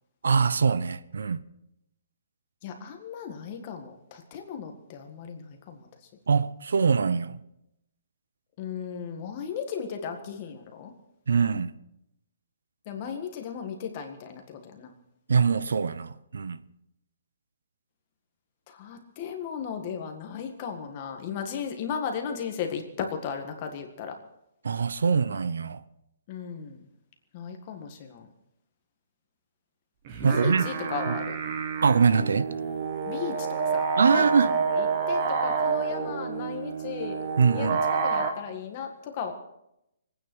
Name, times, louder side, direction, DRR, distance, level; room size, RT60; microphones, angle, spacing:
voice 1, 0.2-1.4 6.3-7.4 11.3-11.7 15.3-16.6 24.6-25.8 30.2-30.6 31.1-31.2 31.8-32.5 34.0-34.5 37.4-37.8, right 5 dB, 85° right, 0.9 m, -23 dB
voice 2, 2.6-6.1 8.6-10.9 12.8-14.9 18.7-24.2 26.3-26.8 27.3-28.3 30.2-31.4 33.1-34.3 34.7-37.2 37.5-39.3, left 7 dB, 25° left, 1.8 m, -36 dB
sound 1, 30.1-38.3, right 5 dB, 25° right, 1.4 m, -28 dB
24.0 x 9.4 x 6.3 m
hypercardioid pair, 180°, 0 cm